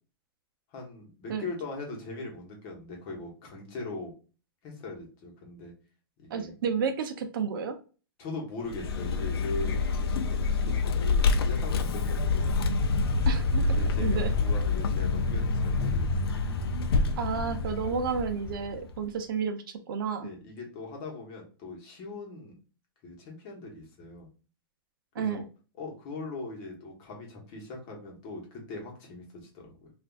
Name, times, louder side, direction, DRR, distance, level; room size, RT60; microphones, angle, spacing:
voice 1, 0.7-4.1 4.6-5.7 6.2-6.5 8.2-12.5 13.8-16.3 20.2-22.6 23.0-24.3 25.2-25.4 25.8-29.9, left 3 dB, 30° left, 0 dB, 1.1 m, -40 dB
voice 2, 6.3-7.8 10.7-10.8 13.3-14.3 17.2-20.3 25.1-25.4, right 6 dB, 65° right, 8 dB, 0.6 m, -31 dB
Vehicle, 8.7-19.0, left 4 dB, 90° left, 0.5 m, -27 dB
3.4 x 2.5 x 2.4 m, 0.35 s
hypercardioid pair, 160°, 12 cm